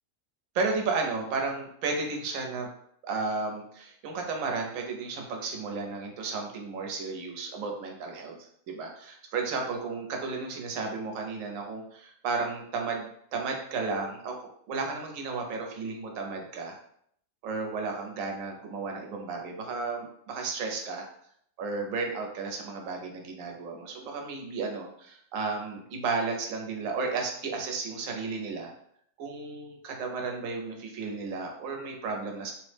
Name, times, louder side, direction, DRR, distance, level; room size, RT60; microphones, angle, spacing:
voice 1, 0.5-2.7 3.0-16.8 17.4-21.1 21.6-28.7 29.2-32.5, right 4 dB, 85° right, 2 dB, 1.0 m, -33 dB
3.0 x 2.0 x 3.1 m, 0.67 s
omnidirectional pair, 1.3 m